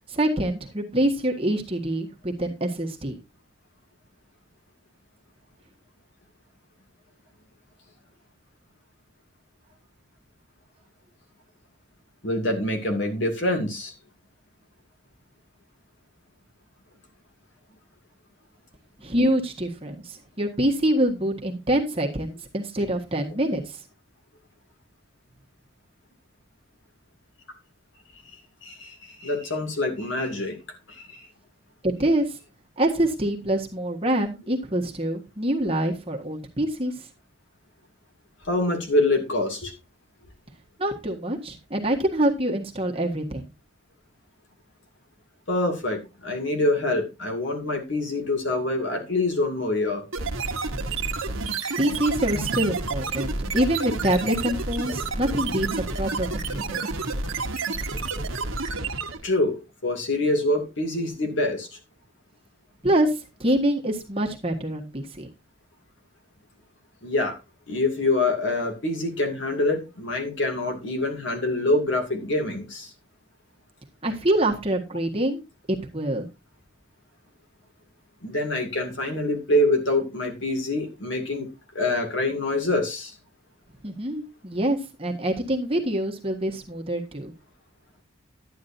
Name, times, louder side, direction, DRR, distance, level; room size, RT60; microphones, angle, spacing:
voice 1, 0.1-3.2 19.0-23.8 31.8-32.3 32.8-36.9 40.8-43.4 51.8-56.8 62.8-65.3 74.0-75.4 75.7-76.2 83.8-87.3, right 1 dB, 30° right, 1 dB, 1.6 m, -25 dB
voice 2, 12.2-13.9 28.6-30.6 30.9-31.3 38.4-39.7 45.5-50.0 52.3-52.7 59.2-61.7 67.0-67.4 67.7-72.9 78.2-81.5 81.7-83.1, left 2 dB, 65° left, 4 dB, 2.5 m, -25 dB
sound 1, 50.1-59.3, right 3 dB, 85° right, 1.3 m, -29 dB
11.5 x 9.6 x 2.7 m, 0.26 s
head